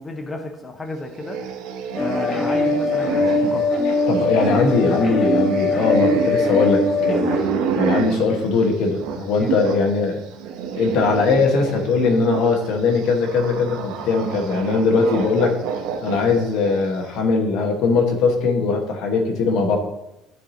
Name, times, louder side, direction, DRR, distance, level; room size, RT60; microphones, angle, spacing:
voice 1, 0.0-1.4 2.0-3.7 9.4-9.6, left 2 dB, 15° left, 4 dB, 0.6 m, -32 dB
sound 1, 1.1-9.9 10.2-17.0, right 6 dB, 80° right, 1.0 m, -29 dB
sound 2, 2.0-7.4, left 2 dB, 35° left, 1.5 m, -21 dB
voice 2, 4.1-7.3 7.8-10.2 10.7-15.5 16.0-19.8, left 4 dB, 70° left, 3 dB, 1.5 m, -20 dB
12.5 x 4.8 x 2.9 m, 0.91 s
cardioid pair, 155°, 0 cm